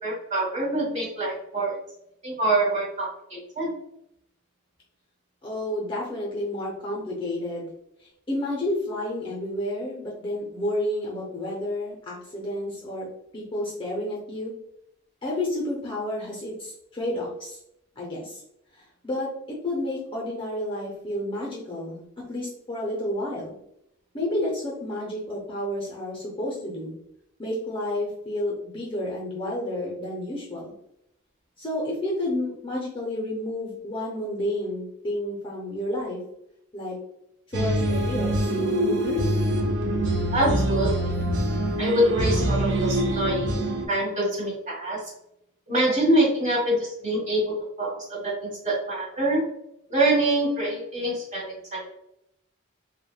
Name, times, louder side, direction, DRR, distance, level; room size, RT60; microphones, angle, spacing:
voice 1, 0.0-1.8 2.2-3.7 40.3-40.9 41.8-45.1 45.7-49.4 49.9-51.9, right 1 dB, 30° right, -6 dB, 1.3 m, -25 dB
voice 2, 5.4-7.7 8.0-13.1 13.3-14.5 15.2-17.6 18.0-18.4 18.7-23.5 24.1-26.9 27.4-30.7 31.6-36.2 36.7-37.0 37.5-38.5 38.8-39.2, left 1 dB, 25° left, -3 dB, 0.5 m, -30 dB
sound 1, 37.5-43.9, right 1 dB, 55° right, 0.4 m, -24 dB
3.4 x 2.1 x 2.3 m, 0.77 s
head